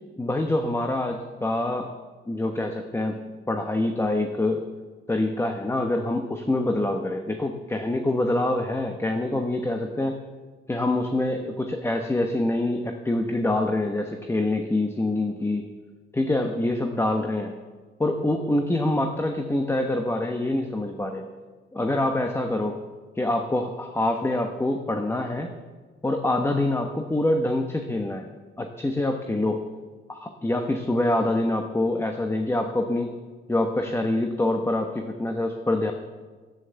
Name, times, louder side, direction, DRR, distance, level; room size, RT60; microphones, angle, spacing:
voice 1, 0.2-1.9 2.3-3.2 3.5-4.6 5.1-10.2 10.7-15.6 16.1-17.5 18.0-21.3 21.7-22.8 23.2-25.5 26.0-28.2 28.6-29.6 30.1-33.1 33.5-35.9, left 1 dB, 10° left, 4 dB, 1.1 m, -25 dB
11.0 x 9.2 x 8.1 m, 1.4 s
cardioid pair, 90°, 20 cm